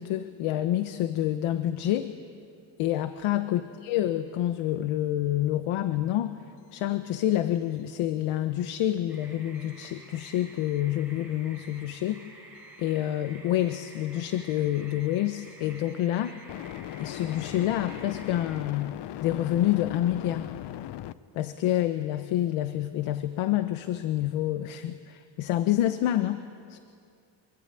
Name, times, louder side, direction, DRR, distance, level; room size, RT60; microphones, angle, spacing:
voice 1, 0.0-2.1 2.8-6.4 6.7-12.2 12.8-16.4 17.0-20.5 21.3-26.4 26.7-26.8, left 13 dB, 90° left, 10 dB, 1.1 m, -28 dB
sound 1, 9.1-18.6, right 2 dB, 5° right, 6.7 m, -50 dB
sound 2, 11.6-11.8 16.5-21.1, left 13 dB, 60° left, 0.8 m, -38 dB
25.0 x 23.5 x 9.1 m, 2.3 s
cardioid pair, 140°, 48 cm